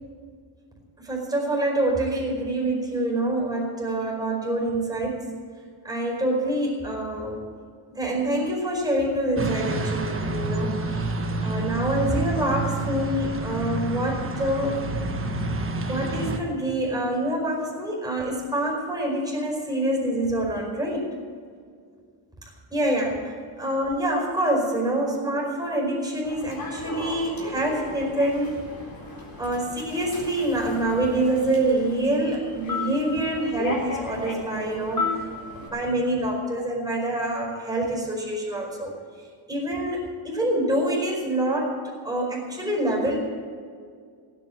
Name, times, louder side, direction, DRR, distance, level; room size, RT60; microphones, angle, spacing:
voice 1, 1.0-5.3 5.8-7.4 7.9-11.1 11.4-14.8 15.9-21.2 22.7-28.7 29.4-35.1 35.5-38.9 39.5-43.2, right 1 dB, 10° right, -2 dB, 4.8 m, -26 dB
sound 1, 9.4-16.4, right 2 dB, 25° right, 1.3 m, -29 dB
Human voice / Subway metro underground, 26.2-35.7, left 3 dB, 40° left, 3.9 m, -35 dB
16.5 x 9.1 x 7.7 m, 2.1 s
cardioid pair, 140°, 50 cm